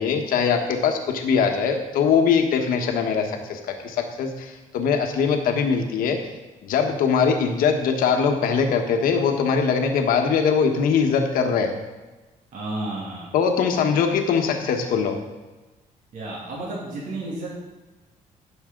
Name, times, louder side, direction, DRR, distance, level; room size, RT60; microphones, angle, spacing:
voice 1, 0.0-6.2 6.6-11.7 13.3-15.2, left 6 dB, 85° left, 4 dB, 1.3 m, -22 dB
voice 2, 12.5-13.3 16.1-17.6, right 2 dB, 65° right, -5 dB, 2.7 m, -32 dB
15.5 x 6.5 x 3.8 m, 1.2 s
cardioid pair, 135°, 14 cm